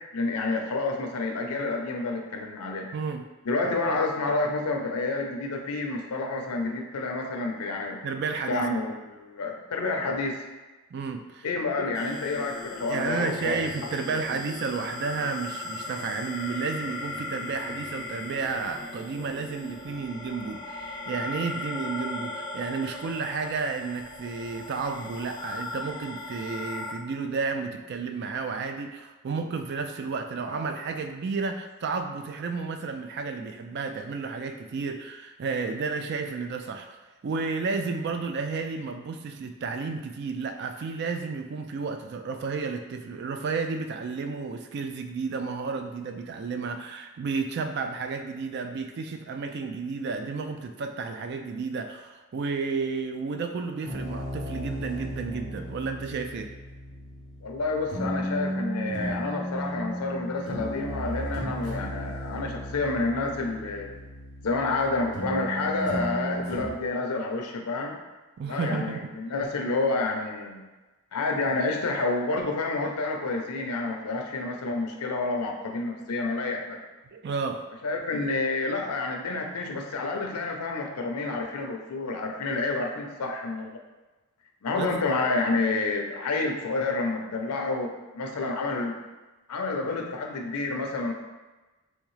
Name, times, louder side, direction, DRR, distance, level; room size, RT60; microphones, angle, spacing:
voice 1, 0.1-2.9 3.4-8.0 8.5-10.4 11.4-13.6 14.1-14.2 57.4-63.9 64.4-68.0 68.5-70.6 71.1-76.8 77.8-83.8 84.6-89.0 89.5-91.1, left 3 dB, 90° left, 2 dB, 0.6 m, -29 dB
voice 2, 8.0-8.6 10.9-11.5 11.8-11.9 12.9-56.5 68.4-69.1 77.1-77.6 84.8-84.9, right 4 dB, 50° right, 6 dB, 0.3 m, -32 dB
sound 1, 11.9-26.9, left 2 dB, 15° left, 0.5 m, -38 dB
sound 2, 53.8-66.7, equal, 85° right, 1.2 m, -34 dB
3.6 x 3.1 x 3.1 m, 1.2 s
head